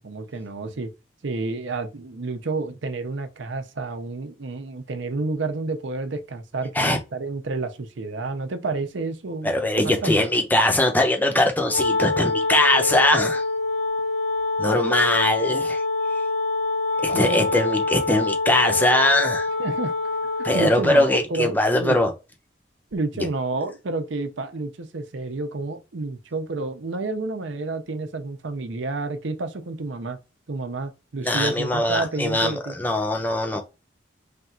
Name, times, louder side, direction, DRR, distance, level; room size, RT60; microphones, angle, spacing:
voice 1, 0.0-0.9 1.2-9.5 9.8-10.3 17.1-17.5 19.6-19.9 20.5-22.0 22.9-30.2 30.5-32.8, right 3 dB, 75° right, 0.7 m, -30 dB
voice 2, 9.4-13.4 14.6-15.8 17.0-19.5 20.4-22.1 23.2-23.3 31.2-33.6, left 1 dB, 10° left, 0.6 m, -21 dB
Wind instrument woodwind instrument, 11.7-20.9, left 3 dB, 65° left, 0.9 m, -25 dB
3.4 x 2.4 x 4.2 m
head